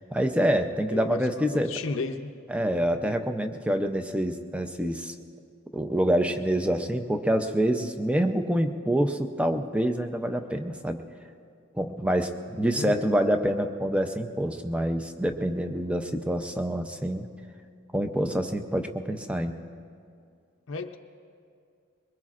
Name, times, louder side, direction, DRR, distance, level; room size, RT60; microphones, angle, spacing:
voice 1, 0.0-1.7 2.5-5.1 5.7-11.0 11.8-17.3 17.9-19.5, equal, 5° right, 6 dB, 0.5 m, -26 dB
voice 2, 0.9-2.3 12.7-12.9 20.7-21.0, left 3 dB, 70° left, 4 dB, 0.7 m, -33 dB
23.0 x 21.0 x 2.5 m, 2.3 s
head